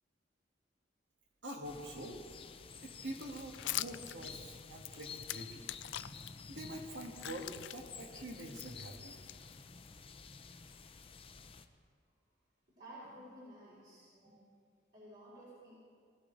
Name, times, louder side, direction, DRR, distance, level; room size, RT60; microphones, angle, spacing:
voice 1, 1.4-2.2 2.8-5.7 6.5-9.2, right 1 dB, 75° right, 1 dB, 2.2 m, -45 dB
sound 1, 1.6-11.7, left 5 dB, 30° left, 0.6 m, -51 dB
sound 2, 3.1-6.3 6.8-9.9, left 15 dB, 80° left, 0.4 m, -44 dB
voice 2, 12.8-14.4 14.9-15.8, right 1 dB, 55° right, -9 dB, 4.7 m, -53 dB
20.0 x 15.5 x 4.2 m, 2.2 s
head